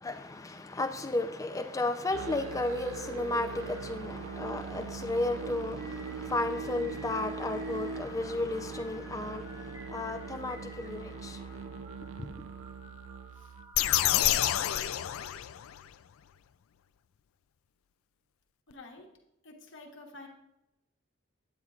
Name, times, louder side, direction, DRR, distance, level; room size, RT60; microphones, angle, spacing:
voice 1, 0.0-12.4, left 2 dB, 15° left, 0.4 m, -34 dB
Musical instrument, 2.1-13.7, right 5 dB, 70° right, 0.4 m, -41 dB
sound 1, 2.8-14.0, equal, 25° right, 1.1 m, -54 dB
sound 2, 13.7-15.9, left 13 dB, 80° left, 0.3 m, -28 dB
voice 2, 18.7-19.1 19.4-20.3, left 2 dB, 60° left, 1.2 m, -49 dB
9.5 x 8.9 x 2.4 m
head